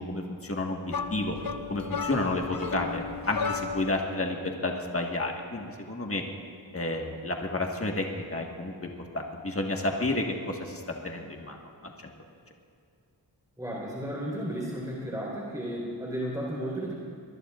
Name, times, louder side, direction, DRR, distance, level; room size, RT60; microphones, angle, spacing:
voice 1, 0.0-1.3 1.7-6.2 6.7-11.6, left 2 dB, 30° left, 1 dB, 1.6 m, -31 dB
sound 1, 0.9-4.0, left 5 dB, 50° left, 0.8 m, -34 dB
voice 2, 13.6-16.9, equal, 10° right, -4 dB, 4.2 m, -33 dB
24.0 x 21.5 x 2.5 m, 2.3 s
wide cardioid pair, 50°, 45 cm